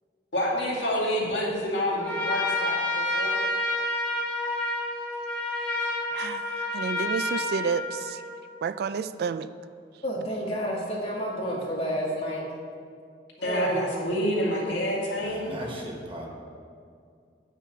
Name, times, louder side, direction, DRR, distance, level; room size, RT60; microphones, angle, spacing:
voice 1, 0.3-3.4 13.4-15.5, equal, 90° left, -4 dB, 2.1 m, -28 dB
Trumpet, 2.0-8.5, left 2 dB, 10° left, 1.7 m, -29 dB
voice 2, 6.7-7.8 8.6-9.5, right 6 dB, 60° right, 13 dB, 0.3 m, -29 dB
voice 3, 10.0-12.4 13.4-13.7, equal, 35° left, -4 dB, 1.9 m, -30 dB
voice 4, 15.1-16.3, equal, 30° right, -1 dB, 1.3 m, -38 dB
8.4 x 6.0 x 5.7 m, 2.2 s
head